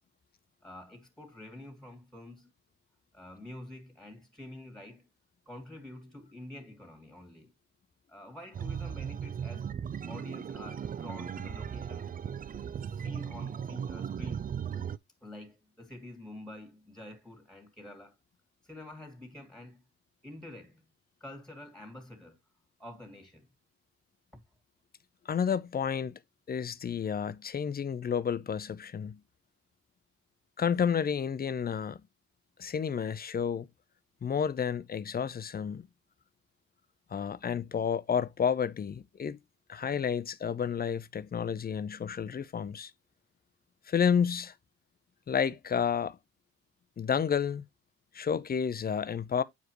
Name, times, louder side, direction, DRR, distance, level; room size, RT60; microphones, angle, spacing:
voice 1, 0.6-2.5 3.1-5.1 5.5-7.5 8.1-9.7 10.1-12.1 13.0-14.5 15.2-18.2 18.6-19.8 20.2-20.9 21.2-22.4 22.8-23.5, left 1 dB, ahead, 2.1 m, -47 dB
sound 1, 8.5-15.0, right 8 dB, 30° right, 0.4 m, -37 dB
voice 2, 25.3-26.2 26.5-29.2 30.6-32.0 32.6-33.7 34.2-35.9 37.1-39.4 39.7-42.9 43.9-44.5 45.3-46.2 47.0-47.6 48.1-49.4, left 7 dB, 30° left, 0.6 m, -30 dB
8.1 x 4.9 x 3.0 m
cardioid pair, 90°, 30 cm